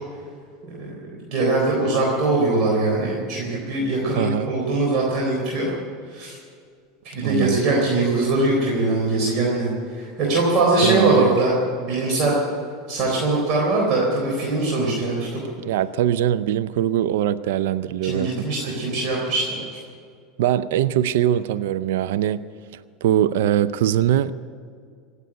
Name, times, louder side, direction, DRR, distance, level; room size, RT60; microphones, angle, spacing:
voice 1, 1.3-5.7 6.1-6.3 7.0-12.4 12.9-15.4 18.0-19.6, right 2 dB, 50° right, -2 dB, 4.0 m, -22 dB
voice 2, 4.2-4.5 7.2-7.6 10.8-11.4 15.6-18.8 20.4-22.4 23.0-24.3, right 11 dB, 75° right, 14 dB, 0.5 m, -22 dB
18.0 x 8.3 x 9.7 m, 2.2 s
hypercardioid pair, 95°, 0 cm